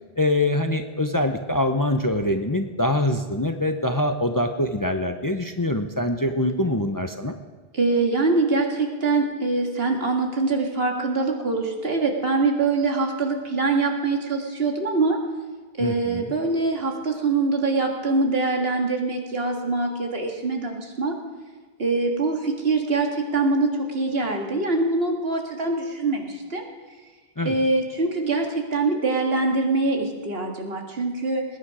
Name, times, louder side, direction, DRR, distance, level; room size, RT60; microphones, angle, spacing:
voice 1, 0.2-7.3 15.8-16.3 27.4-27.6, left 1 dB, 20° left, 6 dB, 0.7 m, -24 dB
voice 2, 7.7-15.2 15.8-21.1 21.8-26.6 27.5-31.5, right 3 dB, 70° right, 2 dB, 2.1 m, -24 dB
20.0 x 9.9 x 4.9 m, 1.4 s
omnidirectional pair, 1.0 m